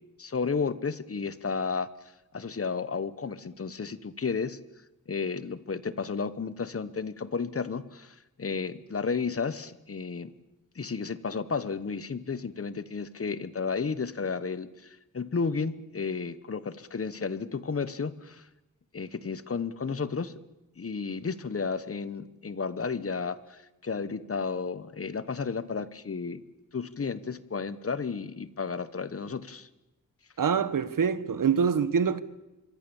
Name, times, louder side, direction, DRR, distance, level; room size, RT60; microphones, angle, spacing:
voice 1, 0.2-1.9 2.3-4.6 5.1-10.3 10.7-18.4 18.9-20.3 20.8-26.4 26.7-29.7, left 5 dB, 45° left, 1.2 m, -32 dB
voice 2, 30.4-32.2, right 6 dB, 75° right, 1.2 m, -25 dB
25.5 x 24.0 x 7.2 m
wide cardioid pair, 125°, 32 cm